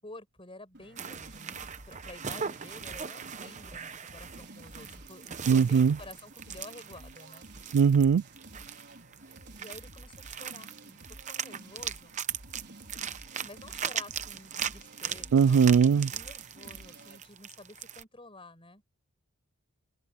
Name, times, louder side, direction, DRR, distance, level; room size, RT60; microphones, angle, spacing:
voice 1, 0.0-7.5 9.6-11.0 11.3-12.2 13.4-18.8, left 2 dB, 25° left, 7.1 m, -50 dB
sound 1, 0.7-17.3, right 2 dB, 50° right, 5.0 m, -51 dB
sound 2, 1.0-18.0, right 8 dB, 35° right, 0.8 m, -40 dB
voice 2, 5.5-5.9 7.7-8.2 15.3-16.1, right 6 dB, 70° right, 0.3 m, -20 dB
open air
head